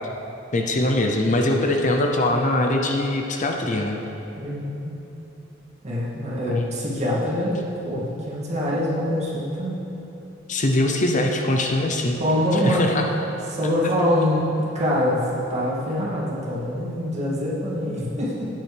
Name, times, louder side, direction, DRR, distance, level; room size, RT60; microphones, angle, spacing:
voice 1, 0.5-4.0 6.5-6.7 10.5-12.2 12.6-13.0 17.9-18.0, left 1 dB, 40° left, 3 dB, 0.7 m, -22 dB
voice 2, 4.4-5.0 5.8-9.8 12.2-12.9 13.5-14.5 14.7-18.4, left 1 dB, 35° right, -7 dB, 2.4 m, -24 dB
13.0 x 9.3 x 3.4 m, 3.0 s
head